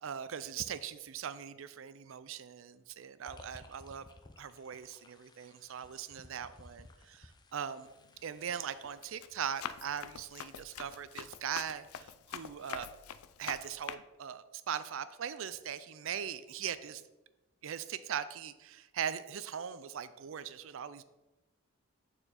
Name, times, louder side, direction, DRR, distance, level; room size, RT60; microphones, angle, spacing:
voice 1, 0.0-4.1 4.4-7.9 8.2-12.9 13.4-17.0 17.6-21.0, right 8 dB, 65° right, 14 dB, 0.4 m, -40 dB
sound 1, 3.3-9.2, left 2 dB, 20° left, 0.4 m, -57 dB
Run, 7.9-8.2 8.7-14.0, left 9 dB, 85° left, 0.4 m, -45 dB
8.9 x 4.4 x 4.1 m, 1.0 s
head